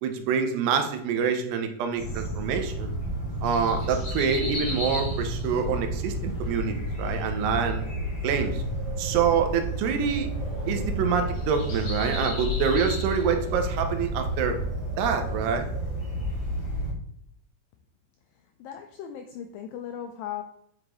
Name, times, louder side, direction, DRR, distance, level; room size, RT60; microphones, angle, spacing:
voice 1, 0.0-2.9 3.4-7.8 8.2-8.6 9.0-10.3 10.7-14.6 15.0-15.7, right 6 dB, 85° right, 6 dB, 2.9 m, -26 dB
sound 1, 2.0-16.9, equal, 35° left, 3.0 m, -31 dB
voice 2, 18.6-20.4, left 9 dB, 90° left, 5 dB, 2.0 m, -37 dB
7.9 x 5.8 x 3.0 m, 0.72 s
omnidirectional pair, 4.6 m